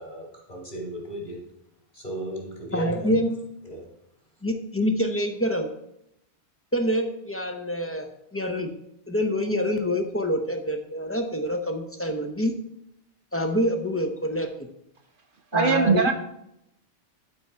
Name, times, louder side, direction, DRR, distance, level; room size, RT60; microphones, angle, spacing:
voice 1, 0.0-1.4 1.9-3.2 3.7-3.8, right 1 dB, 40° left, -3 dB, 2.7 m, -35 dB
voice 2, 2.7-3.4 4.4-5.7 6.7-8.7 9.1-12.5 13.3-14.5 15.5-16.1, equal, 15° left, 5 dB, 0.6 m, -26 dB
voice 3, 15.5-16.1, right 5 dB, 60° right, 6 dB, 0.7 m, -20 dB
12.0 x 4.3 x 4.5 m, 0.81 s
omnidirectional pair, 1.1 m